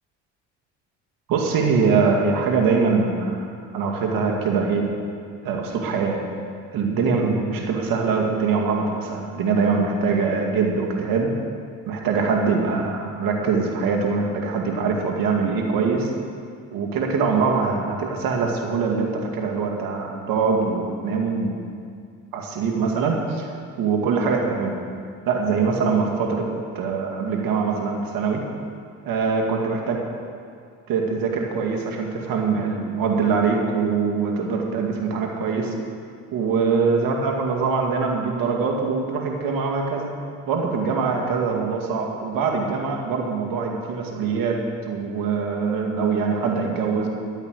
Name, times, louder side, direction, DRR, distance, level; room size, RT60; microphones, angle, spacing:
voice 1, 1.3-3.4 3.7-4.9 5.4-6.2 6.7-11.3 11.9-16.1 16.7-21.6 22.3-23.5 23.8-24.8 25.3-26.5 26.7-28.4 29.0-30.0 30.9-35.7 36.3-40.1 40.5-44.6 44.9-47.1, right 5 dB, 70° right, 1 dB, 2.3 m, -23 dB
13.5 x 8.8 x 6.3 m, 2.3 s
supercardioid pair, 65°, 35 cm